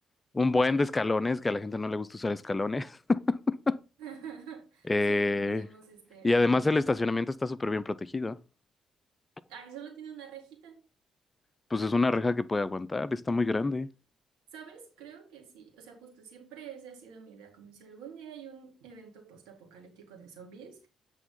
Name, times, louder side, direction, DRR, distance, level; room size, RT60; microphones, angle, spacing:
voice 1, 0.3-3.8 4.9-5.7 6.2-8.4 11.7-13.9, left 3 dB, 25° left, 0.5 m, -27 dB
voice 2, 4.0-6.8 9.5-10.8 14.5-20.9, right 7 dB, 70° right, 2.0 m, -47 dB
8.2 x 3.4 x 5.5 m
figure-of-eight pair, 45°, 0 cm